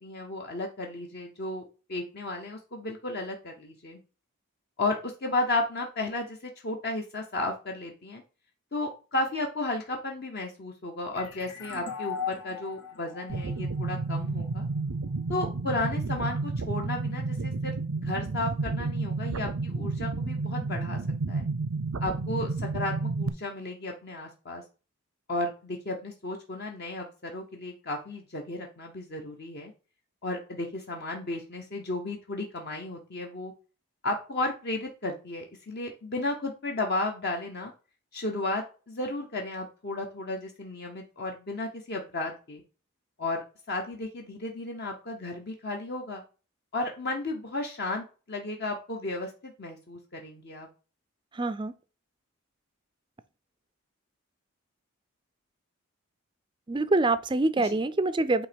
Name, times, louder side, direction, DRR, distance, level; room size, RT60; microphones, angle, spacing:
voice 1, 0.0-4.0 4.8-8.2 8.7-14.7 15.3-21.0 21.3-21.5 22.0-24.6 25.3-29.7 30.2-33.5 34.0-37.7 38.1-42.6 43.2-46.2 46.7-50.7 57.6-57.8, left 2 dB, 45° left, 0.8 m, -34 dB
sound 1, 11.1-14.6, left 7 dB, 90° left, 2.1 m, -38 dB
sound 2, 13.3-23.3, right 3 dB, 70° right, 0.6 m, -31 dB
voice 2, 51.4-51.7 56.7-58.5, right 2 dB, 20° right, 0.4 m, -25 dB
8.5 x 3.0 x 5.1 m
head